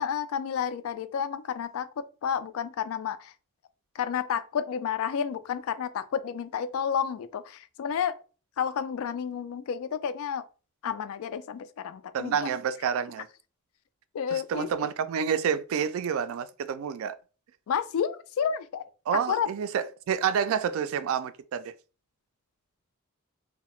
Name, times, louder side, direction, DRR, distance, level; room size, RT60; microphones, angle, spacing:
voice 1, 0.0-1.9 2.2-3.3 4.0-8.2 8.6-10.4 10.8-12.5 14.1-14.7 17.7-18.8 19.3-19.5, left 7 dB, 85° left, 0.3 m, -30 dB
voice 2, 12.1-13.3 14.3-17.2 19.1-21.7, right 7 dB, 75° right, 0.3 m, -29 dB
2.8 x 2.1 x 3.0 m
head